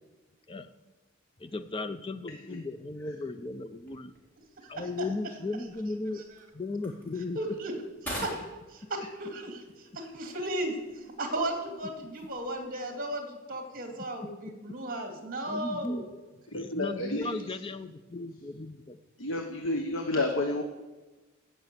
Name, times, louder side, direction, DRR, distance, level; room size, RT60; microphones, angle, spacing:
voice 1, 1.4-4.1 4.7-6.2 6.5-7.6 14.2-14.4 15.5-16.1 16.5-19.0, left 2 dB, 25° left, 11 dB, 0.6 m, -36 dB
sound 1, 3.7-12.9, equal, 10° left, 3.6 m, -47 dB
voice 2, 7.3-7.7 8.0-8.4 8.8-10.8 11.2-16.0, right 1 dB, 40° right, 4 dB, 2.6 m, -35 dB
voice 3, 16.5-17.4 19.2-20.6, left 2 dB, 65° left, 4 dB, 1.1 m, -30 dB
16.0 x 6.2 x 8.2 m, 1.2 s
head